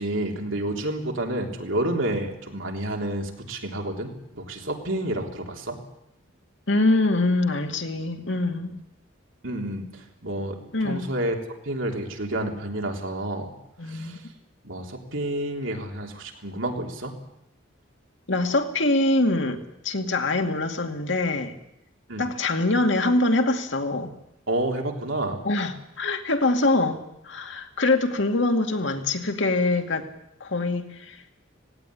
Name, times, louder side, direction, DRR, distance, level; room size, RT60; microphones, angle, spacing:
voice 1, 0.0-5.8 9.4-9.9 10.2-10.6 10.8-11.3 11.7-13.5 13.9-14.2 14.6-17.1 22.1-22.2 24.5-25.4, right 1 dB, 80° right, 2 dB, 3.6 m, -29 dB
voice 2, 6.7-8.7 10.7-11.1 13.8-14.2 18.3-21.5 22.2-24.1 25.4-30.1 30.4-31.2, left 2 dB, 70° left, 5 dB, 2.2 m, -24 dB
18.0 x 17.5 x 9.9 m, 0.81 s
head